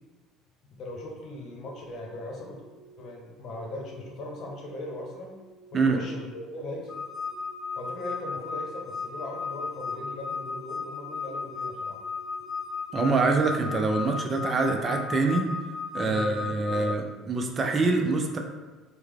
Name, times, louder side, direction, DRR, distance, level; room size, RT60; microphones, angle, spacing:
voice 1, 0.8-2.6 3.0-5.4 5.7-7.0 7.8-12.0 16.0-17.0, left 1 dB, 50° left, -1 dB, 0.9 m, -39 dB
sound 1, 1.6-2.1 2.6-3.1 3.5-4.0 4.4-4.9 5.4-5.9 6.3-6.8 7.3-7.7 8.2-8.7 9.1-9.6 10.1-10.6 11.0-11.5 11.9-12.4 12.9-13.4 13.8-14.3, right 3 dB, 90° right, 0.5 m, -53 dB
sound 2, 6.9-16.9, left 5 dB, 30° left, 0.4 m, -35 dB
voice 2, 12.9-15.5 15.9-18.4, right 3 dB, 30° right, 3 dB, 0.5 m, -25 dB
4.5 x 2.1 x 3.5 m, 1.2 s
figure-of-eight pair, 60°, 0 cm